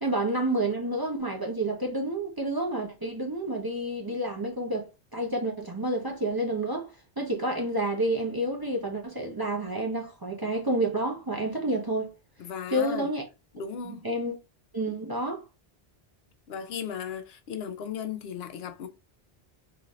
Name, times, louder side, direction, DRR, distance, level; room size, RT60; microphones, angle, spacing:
voice 1, 0.0-12.1 12.7-13.3 13.8-14.4 14.7-15.4, right 1 dB, 25° right, 0.5 m, -29 dB
voice 2, 12.4-13.1 13.5-14.0 16.5-18.9, left 7 dB, 75° left, 0.8 m, -36 dB
3.9 x 2.5 x 2.9 m
omnidirectional pair, 1.0 m